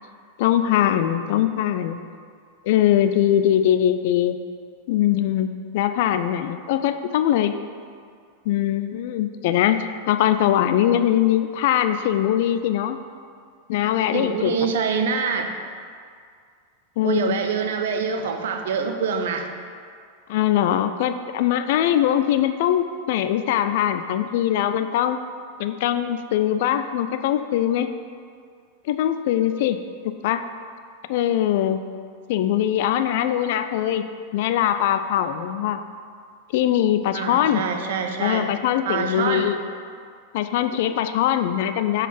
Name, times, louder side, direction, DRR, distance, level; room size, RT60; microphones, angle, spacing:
voice 1, 0.4-2.0 2.6-4.4 4.9-5.5 5.7-7.5 8.5-13.0 13.7-14.7 17.0-17.3 20.3-25.2 25.6-27.9 28.9-29.8 30.0-30.4 31.1-31.8 32.3-34.0 34.3-35.8 36.5-37.7 38.2-39.6 40.3-42.1, left 11 dB, 50° left, 10 dB, 0.3 m, -21 dB
voice 2, 14.1-15.5 17.0-19.5 37.1-38.5 38.9-39.5, right 5 dB, 55° right, 5 dB, 0.6 m, -25 dB
7.2 x 4.2 x 5.2 m, 2.2 s
figure-of-eight pair, 90°, 0 cm